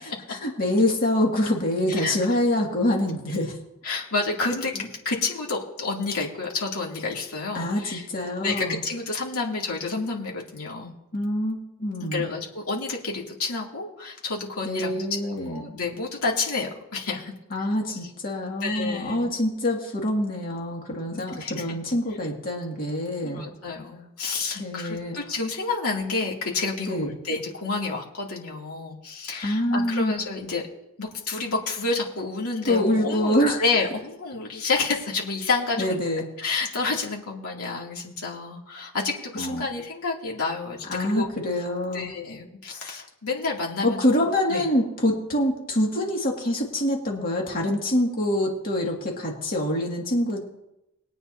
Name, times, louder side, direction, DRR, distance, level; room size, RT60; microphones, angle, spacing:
voice 1, 0.3-3.6 4.8-4.9 7.5-8.8 11.1-12.3 14.6-15.7 17.5-23.5 24.6-25.2 26.9-27.1 29.4-30.1 32.7-33.6 35.8-36.3 39.3-39.7 40.9-42.1 43.8-50.4, left 1 dB, 40° left, -1 dB, 2.2 m, -25 dB
voice 2, 1.9-2.4 3.8-8.0 8.4-10.9 12.0-15.0 15.2-17.3 18.6-19.3 21.1-21.6 23.2-30.7 31.0-36.0 36.4-41.3 41.9-44.0 44.5-44.6, left 3 dB, 75° left, -2 dB, 2.7 m, -29 dB
21.5 x 9.2 x 2.8 m, 0.89 s
head